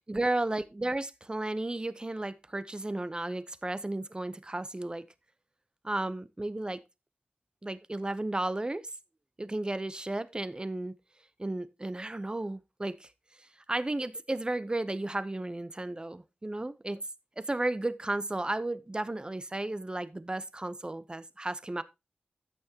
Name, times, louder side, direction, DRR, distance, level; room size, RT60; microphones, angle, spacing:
voice 1, 0.1-5.0 5.8-6.8 7.6-8.9 9.4-10.9 11.4-13.1 13.7-17.0 17.4-21.8, right 2 dB, 25° right, 0.8 m, -33 dB
14.5 x 6.3 x 2.9 m
wide cardioid pair, 75°, 4 cm